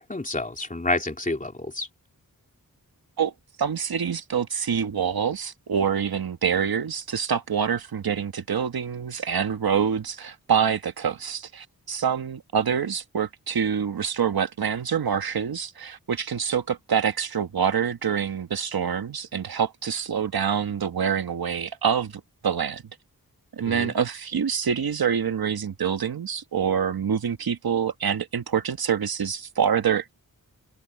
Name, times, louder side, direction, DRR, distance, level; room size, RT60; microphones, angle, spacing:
voice 1, 0.0-1.9 23.7-23.9, left 2 dB, 20° left, 3.2 m, -29 dB
voice 2, 3.6-22.8 23.5-30.1, right 7 dB, 90° right, 1.5 m, -26 dB
open air
wide cardioid pair, 120°, 36 cm